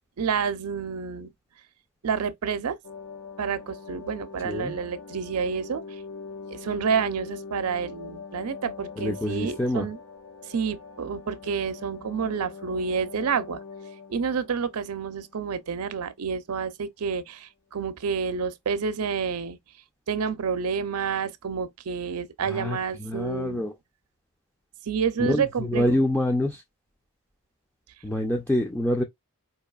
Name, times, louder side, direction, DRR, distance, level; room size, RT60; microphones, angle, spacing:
voice 1, 0.2-1.3 2.0-2.8 3.4-5.8 6.5-10.0 10.5-13.6 14.1-19.6 20.1-23.6 24.9-26.0, right 6 dB, 80° right, 0.5 m, -29 dB
sound 1, 2.8-15.9 16.2-16.3, left 5 dB, 80° left, 1.5 m, -43 dB
voice 2, 4.4-4.8 9.0-9.9 22.5-23.7 25.2-26.6 28.0-29.0, left 1 dB, 10° left, 0.5 m, -26 dB
4.7 x 2.8 x 2.3 m
head